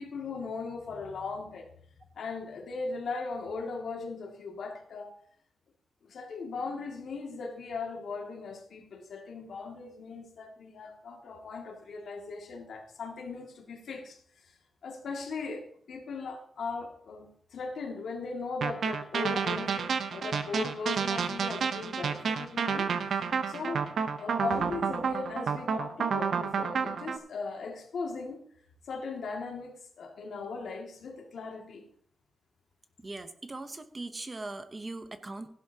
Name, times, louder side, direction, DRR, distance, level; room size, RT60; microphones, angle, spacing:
voice 1, 0.0-1.7 2.1-5.2 6.0-14.5 14.8-22.9 23.5-28.4 28.8-31.8, left 4 dB, 70° left, 1 dB, 2.2 m, -38 dB
sound 1, 18.6-27.2, right 6 dB, 65° right, 0.8 m, -30 dB
voice 2, 33.0-35.5, right 2 dB, 20° right, 9 dB, 0.8 m, -40 dB
15.5 x 11.5 x 2.8 m, 0.63 s
wide cardioid pair, 170°, 0 cm